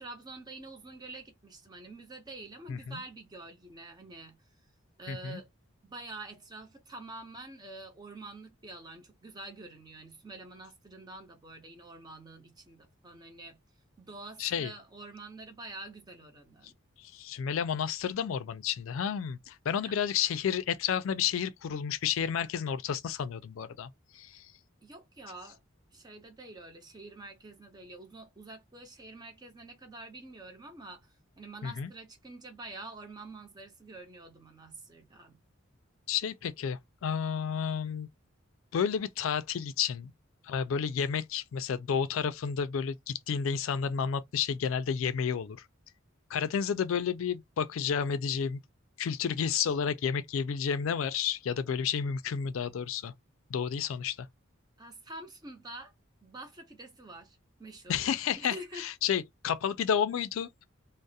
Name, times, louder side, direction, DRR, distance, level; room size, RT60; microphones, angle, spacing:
voice 1, 0.0-4.4 5.0-5.5 5.8-13.6 14.0-16.7 19.8-20.0 24.8-25.6 25.9-35.4 54.8-55.9 56.2-58.0 58.4-58.9, right 2 dB, 20° right, 0.6 m, -47 dB
voice 2, 2.7-3.0 5.1-5.4 14.4-14.7 17.0-23.9 24.1-24.5 31.6-31.9 36.1-38.1 38.7-40.1 40.4-45.6 46.3-48.6 49.0-53.1 53.5-54.2 57.9-60.5, left 7 dB, 70° left, 0.3 m, -31 dB
2.3 x 2.0 x 2.6 m
head